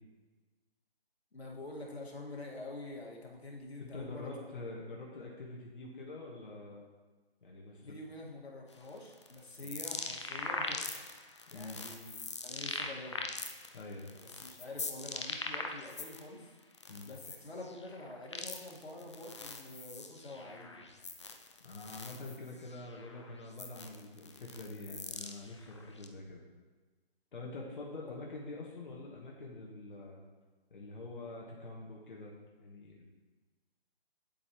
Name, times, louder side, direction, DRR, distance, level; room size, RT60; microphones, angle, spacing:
voice 1, 1.3-4.3 7.8-11.0 11.5-12.1 12.4-13.3 14.1-16.5 17.0-21.0 28.1-28.2, left 2 dB, 80° left, -2 dB, 2.0 m, -47 dB
voice 2, 3.8-6.8 7.4-8.0 9.6-9.7 11.5-11.8 13.7-14.1 16.9-17.1 21.6-26.4 27.3-30.2 30.7-33.1, left 2 dB, 55° left, -3 dB, 1.5 m, -46 dB
sound 1, 8.7-16.3 16.6-26.1, left 3 dB, 30° left, 0.4 m, -42 dB
8.6 x 8.3 x 3.1 m, 1.3 s
figure-of-eight pair, 150°, 31 cm